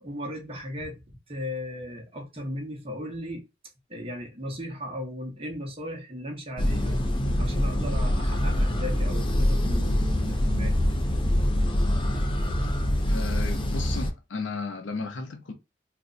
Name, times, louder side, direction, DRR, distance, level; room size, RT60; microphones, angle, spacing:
voice 1, 0.0-3.4 3.9-7.0 7.4-10.9, equal, 30° right, 1.0 m, -36 dB
sound 1, 6.6-14.1, left 1 dB, 25° left, 0.5 m, -25 dB
voice 2, 13.0-15.5, left 4 dB, 75° left, 0.6 m, -34 dB
2.6 x 2.2 x 3.8 m
head